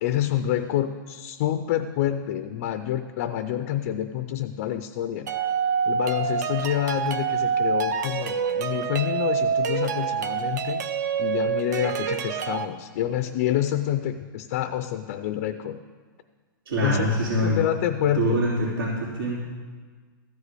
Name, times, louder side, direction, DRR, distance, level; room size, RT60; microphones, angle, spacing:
voice 1, 0.0-5.3 5.9-10.8 11.2-15.8 16.8-17.1 17.4-18.5, left 11 dB, 35° left, 9 dB, 0.4 m, -27 dB
sound 1, 5.3-12.7, right 6 dB, 50° right, 0.7 m, -26 dB
voice 2, 16.6-17.6 18.1-19.4, equal, 90° right, -8 dB, 3.4 m, -24 dB
14.5 x 5.1 x 8.2 m, 1.5 s
hypercardioid pair, 165°, 12 cm